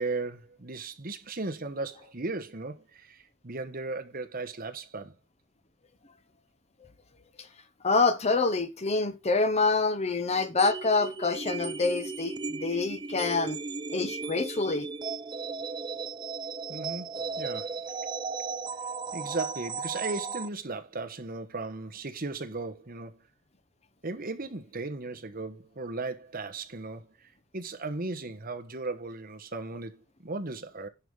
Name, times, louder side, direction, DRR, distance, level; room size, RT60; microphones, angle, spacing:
voice 1, 0.0-5.1 16.7-17.1 17.4-17.8 19.1-23.2 24.0-30.9, right 3 dB, 45° right, 1.2 m, -36 dB
voice 2, 7.8-13.6 13.9-14.9, left 3 dB, 30° left, 0.9 m, -26 dB
sound 1, 10.6-20.5, right 4 dB, 20° right, 0.4 m, -36 dB
10.5 x 5.5 x 4.8 m
head